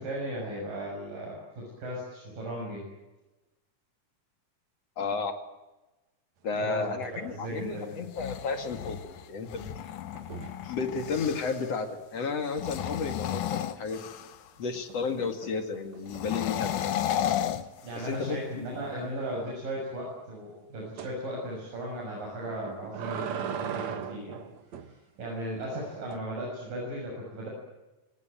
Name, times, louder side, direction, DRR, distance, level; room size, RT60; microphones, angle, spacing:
voice 1, 0.0-2.9 6.6-8.0 17.8-24.4 24.9-27.5, right 1 dB, 85° right, -3 dB, 8.5 m, -36 dB
voice 2, 5.0-5.3 6.4-9.7 10.6-14.0 14.6-16.9 17.9-18.6 18.9-19.1, left 4 dB, 50° left, 7 dB, 3.1 m, -32 dB
sound 1, 6.6-7.2 7.4-7.8 10.1-10.7 13.8-14.3 14.7-17.1 17.6-17.7 18.0-18.1 18.5-18.6 21.0-21.2 22.4-24.9 25.7-26.2, right 8 dB, 60° right, 2.7 m, -40 dB
sound 2, 8.0-11.7 12.5-14.5 16.1-18.4, left 11 dB, 75° left, 2.5 m, -33 dB
25.0 x 19.5 x 9.0 m, 1.1 s
omnidirectional pair, 3.8 m